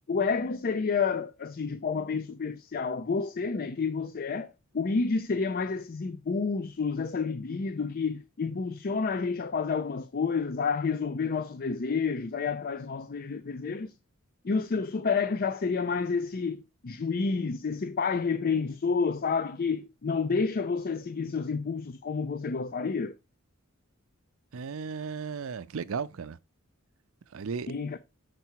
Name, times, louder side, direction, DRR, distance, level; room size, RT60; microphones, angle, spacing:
voice 1, 0.1-13.9 14.4-23.1 27.7-28.0, left 5 dB, 45° left, 0.5 m, -29 dB
voice 2, 24.5-26.4 27.3-27.7, right 5 dB, 70° right, 0.5 m, -35 dB
6.8 x 4.7 x 4.5 m
head